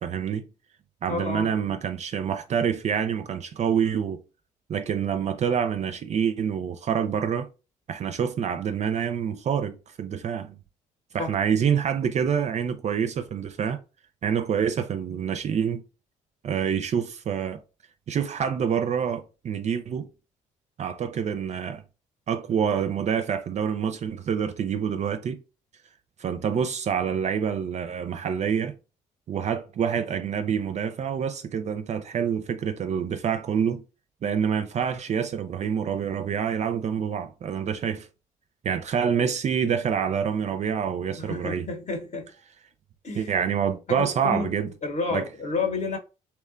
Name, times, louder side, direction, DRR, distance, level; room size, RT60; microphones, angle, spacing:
voice 1, 0.0-0.5 1.0-4.2 4.7-7.5 7.9-10.6 11.1-13.8 14.2-15.8 16.4-17.6 18.1-20.1 20.8-21.8 22.3-25.4 26.2-28.7 29.3-33.8 34.2-38.1 38.6-41.7 43.2-44.7 45.1-45.2, right 7 dB, 40° right, 0.4 m, -27 dB
voice 2, 1.1-1.5 11.2-11.3 41.2-42.3 43.0-43.3 43.9-46.0, left 4 dB, 40° left, 0.9 m, -30 dB
2.9 x 2.1 x 2.4 m
hypercardioid pair, 45°, 17 cm